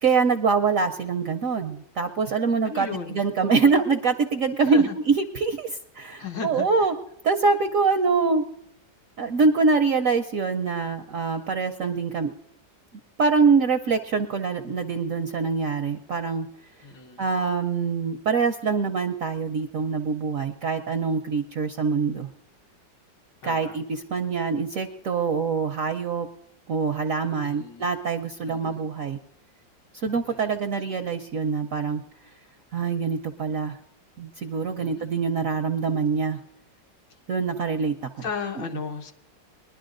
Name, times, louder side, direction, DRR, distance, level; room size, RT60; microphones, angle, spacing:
voice 1, 0.0-6.9 7.2-8.4 9.2-12.3 13.2-16.5 17.2-22.3 23.4-26.3 26.7-29.2 30.0-32.0 32.7-33.8 34.2-36.4 37.3-37.9, right 5 dB, 70° right, 5 dB, 0.8 m, -24 dB
voice 2, 2.6-3.8 4.6-4.9 6.2-6.9 16.8-17.3 23.4-23.8 27.4-27.8 28.4-28.8 30.2-30.6 34.8-35.1 38.2-39.1, left 5 dB, 75° left, 3 dB, 1.9 m, -35 dB
22.0 x 11.0 x 2.5 m, 0.73 s
omnidirectional pair, 2.0 m